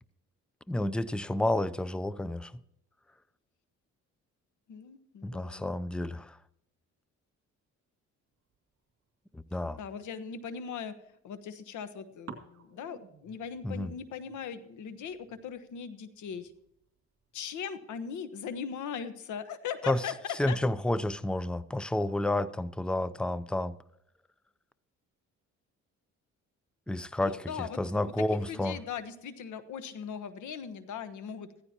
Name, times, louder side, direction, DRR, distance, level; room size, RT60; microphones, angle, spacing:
voice 1, 0.7-2.5 5.2-6.4 9.3-9.8 13.6-13.9 19.9-20.0 20.4-23.8 26.9-28.8, left 1 dB, 5° left, 0.5 m, -30 dB
voice 2, 4.7-5.7 9.8-10.9 11.2-16.5 17.3-20.2 20.5-20.6 27.2-31.5, left 7 dB, 75° left, 1.3 m, -39 dB
sound 1, 8.3-10.5 11.0-11.9 12.3-17.7, right 6 dB, 50° right, 2.5 m, -54 dB
15.5 x 14.5 x 2.9 m
cardioid pair, 90°, 30 cm